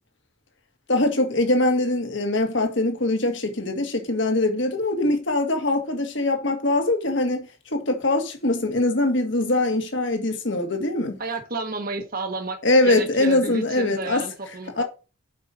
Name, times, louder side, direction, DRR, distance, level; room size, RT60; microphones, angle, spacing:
voice 1, 0.9-11.2 12.6-14.2 14.8-14.9, left 2 dB, 60° left, 1.7 m, -22 dB
voice 2, 11.2-12.6 12.8-14.8, right 3 dB, 45° right, 1.1 m, -31 dB
7.6 x 5.5 x 5.1 m
head